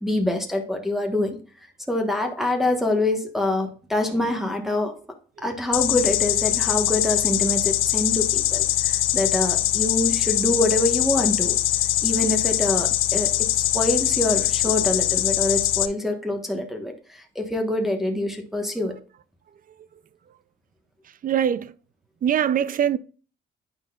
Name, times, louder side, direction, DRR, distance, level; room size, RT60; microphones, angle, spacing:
voice 1, 0.0-1.4 1.9-4.9 5.4-11.6 12.0-19.0, left 1 dB, ahead, 1.1 m, -25 dB
sound 1, 5.7-15.9, left 14 dB, 85° left, 0.5 m, -22 dB
voice 2, 19.5-20.0 20.3-20.4 21.0-21.8 22.2-23.0, right 9 dB, 45° right, 0.4 m, -25 dB
9.3 x 5.4 x 2.3 m
cardioid pair, 90°, 20 cm